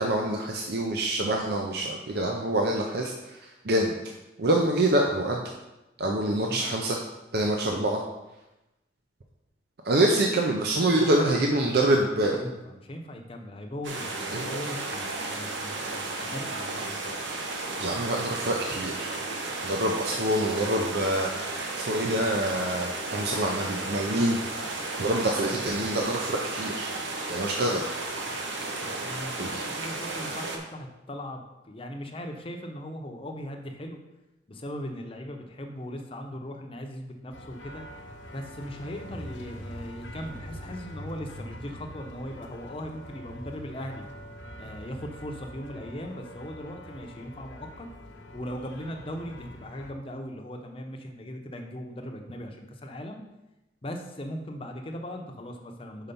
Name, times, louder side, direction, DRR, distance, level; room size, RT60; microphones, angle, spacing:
voice 1, 0.0-3.9 4.4-5.4 6.0-7.0 7.3-8.0 9.8-12.4 14.3-14.5 17.8-19.1 19.6-24.4 25.0-26.9 27.3-27.8 29.4-29.6, right 1 dB, 55° right, 1 dB, 0.6 m, -26 dB
voice 2, 6.2-6.7 10.9-11.4 11.6-11.9 12.3-17.2 28.8-34.0 34.5-37.8 38.3-44.0 44.6-47.9 48.3-53.2 53.8-56.1, equal, 30° left, 3 dB, 0.7 m, -39 dB
sound 1, 13.8-30.6, right 2 dB, 75° right, 1.0 m, -34 dB
sound 2, 37.3-49.9, equal, 85° left, 0.9 m, -44 dB
5.6 x 4.4 x 5.3 m, 0.98 s
head